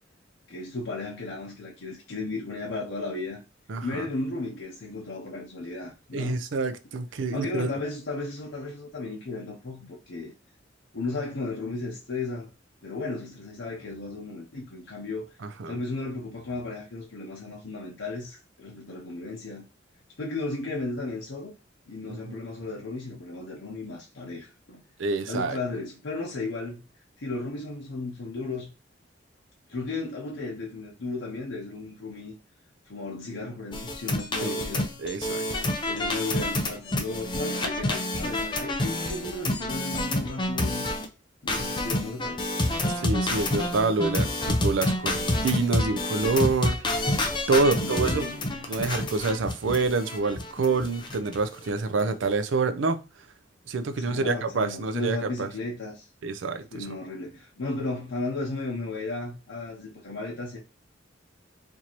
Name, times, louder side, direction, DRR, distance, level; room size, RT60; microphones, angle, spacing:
voice 1, 0.5-3.4 3.8-6.4 7.3-10.3 10.9-12.5 12.8-15.3 15.7-19.6 20.2-21.5 21.9-24.8 25.3-26.8 27.2-28.7 29.7-32.3 32.9-34.9 35.4-40.9 41.4-42.5 47.6-48.7 53.9-56.1 56.7-60.6, left 3 dB, 80° left, 0.8 m, -35 dB
voice 2, 3.7-4.0 6.1-7.7 15.6-15.8 25.0-25.6 34.4-34.5 35.0-35.4 43.0-46.8 47.1-47.2 47.5-48.3 48.7-53.0 53.7-55.5 56.2-57.0, right 3 dB, 80° right, 0.5 m, -27 dB
sound 1, 33.7-41.0 41.5-51.4 51.6-51.7 52.0-52.3, left 1 dB, 25° left, 0.6 m, -28 dB
4.5 x 2.6 x 2.9 m
head